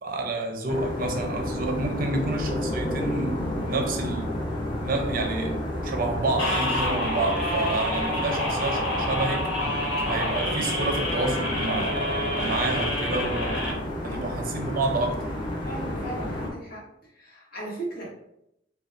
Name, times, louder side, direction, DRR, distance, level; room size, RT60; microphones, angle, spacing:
voice 1, 0.0-4.3 4.8-9.5 10.1-13.7 14.0-15.3, right 2 dB, 50° right, 3 dB, 0.5 m, -29 dB
sound 1, 0.7-16.5, left 1 dB, 25° left, 0.8 m, -31 dB
sound 2, 6.4-13.7, left 1 dB, 90° left, 1.2 m, -28 dB
voice 2, 15.6-16.9 17.1-18.2, right 1 dB, 50° left, -5 dB, 1.4 m, -36 dB
5.0 x 2.3 x 2.5 m, 0.79 s
head